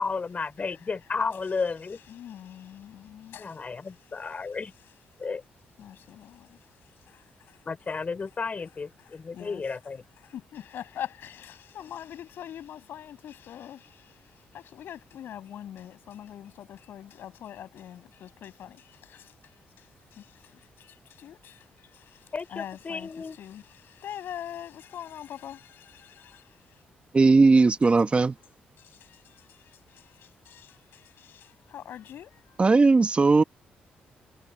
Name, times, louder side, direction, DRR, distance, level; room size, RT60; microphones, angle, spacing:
voice 1, 0.0-2.0 3.3-4.7 5.2-5.4 7.6-10.0 22.3-23.4, left 4 dB, 40° left, 6.3 m, -32 dB
voice 2, 1.9-4.3 4.8-4.9 5.8-7.7 9.0-9.6 10.2-26.8 28.8-32.7, left 10 dB, 75° left, 7.6 m, -44 dB
voice 3, 27.1-28.3 32.6-33.4, right 3 dB, 30° right, 1.4 m, -18 dB
cardioid pair, 70°, 4 cm